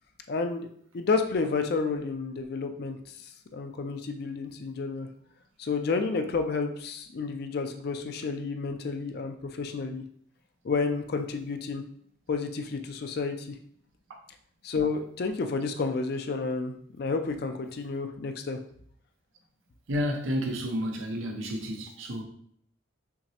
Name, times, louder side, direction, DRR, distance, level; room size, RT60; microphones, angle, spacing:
voice 1, 0.3-0.7 0.9-3.2 3.5-5.1 5.6-10.0 10.6-11.8 12.3-13.6 14.6-18.6, left 4 dB, 50° left, 0.4 m, -30 dB
voice 2, 19.9-22.2, equal, 85° right, 0.7 m, -31 dB
5.7 x 2.0 x 2.8 m
head